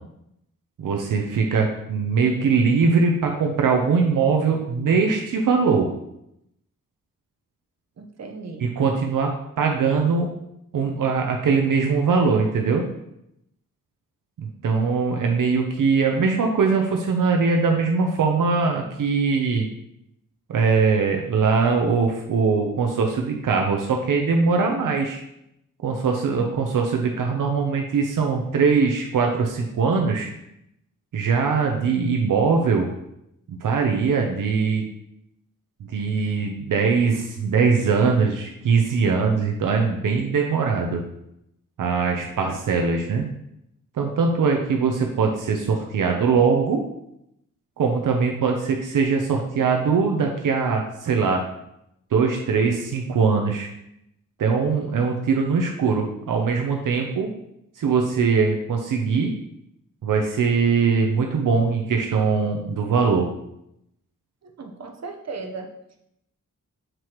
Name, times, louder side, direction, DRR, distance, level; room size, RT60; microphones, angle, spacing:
voice 1, 0.8-5.9 8.6-10.3 10.7-12.9 14.4-19.7 20.5-25.2 25.8-30.3 31.1-32.9 33.5-34.8 35.9-41.0 41.8-43.3 44.0-46.8 47.8-51.4 52.1-53.7 54.4-57.3 57.8-59.3 60.0-63.3, right 5 dB, 75° right, 2 dB, 0.7 m, -21 dB
voice 2, 8.0-8.7 64.4-65.7, right 4 dB, 55° right, 3 dB, 0.9 m, -36 dB
7.6 x 4.7 x 3.0 m, 0.80 s
cardioid pair, 90°, 32 cm